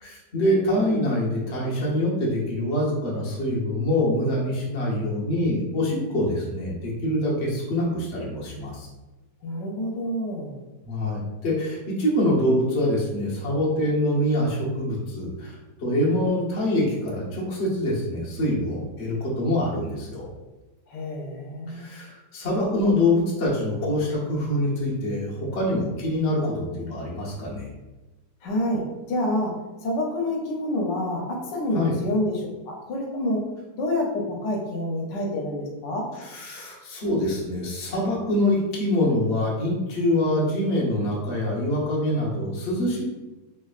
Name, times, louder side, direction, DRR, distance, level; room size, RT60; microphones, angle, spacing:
voice 1, 0.0-8.9 10.8-20.3 21.7-27.7 31.7-32.0 36.2-43.0, left 1 dB, 45° left, -4 dB, 1.0 m, -25 dB
voice 2, 9.4-10.5 20.9-21.9 28.4-29.5 29.8-33.4 33.7-36.1, left 1 dB, 80° left, -1 dB, 1.3 m, -28 dB
3.4 x 3.3 x 2.4 m, 1.1 s
omnidirectional pair, 1.9 m